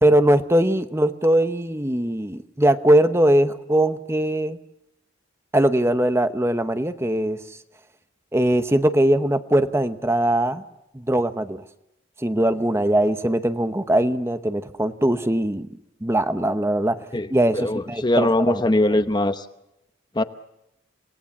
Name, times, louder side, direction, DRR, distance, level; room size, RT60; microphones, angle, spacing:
voice 1, 0.0-4.6 5.5-7.4 8.3-10.6 10.9-11.6 12.2-15.7 16.0-17.1 17.3-18.6, right 1 dB, 15° right, 10 dB, 0.9 m, -21 dB
voice 2, 17.5-19.5 20.1-20.2, left 1 dB, 20° left, 11 dB, 0.8 m, -21 dB
28.0 x 18.5 x 7.3 m, 0.85 s
head